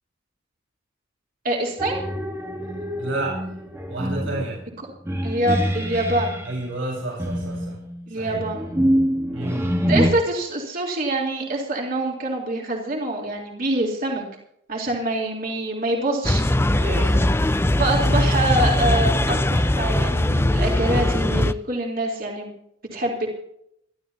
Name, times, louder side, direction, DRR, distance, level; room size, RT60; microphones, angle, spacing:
voice 1, 1.4-2.0 5.2-6.4 8.1-8.7 9.9-14.2 14.7-16.4 17.8-22.5 22.9-23.3, right 1 dB, 50° right, -1 dB, 3.6 m, -25 dB
sound 1, 1.8-6.5 7.2-10.1, equal, 15° right, 1.6 m, -25 dB
voice 2, 3.0-3.4 3.9-4.6 6.4-7.8 8.1-8.4 9.3-9.7 16.8-17.3, right 2 dB, 75° right, -3 dB, 7.7 m, -30 dB
sound 2, 16.2-21.5, left 1 dB, 10° left, 0.5 m, -20 dB
24.0 x 13.0 x 2.9 m, 0.73 s
head